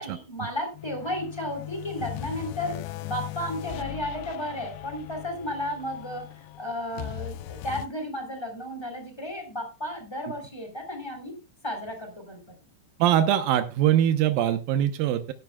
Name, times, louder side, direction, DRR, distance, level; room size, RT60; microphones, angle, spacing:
voice 1, 0.0-11.4 11.6-12.4, left 1 dB, 5° left, 5 dB, 2.9 m, -33 dB
sound 1, 0.7-7.9, left 15 dB, 80° left, 2.6 m, -38 dB
voice 2, 13.0-15.3, right 11 dB, 90° right, 10 dB, 2.0 m, -22 dB
17.5 x 10.5 x 2.3 m, 0.26 s
omnidirectional pair, 5.4 m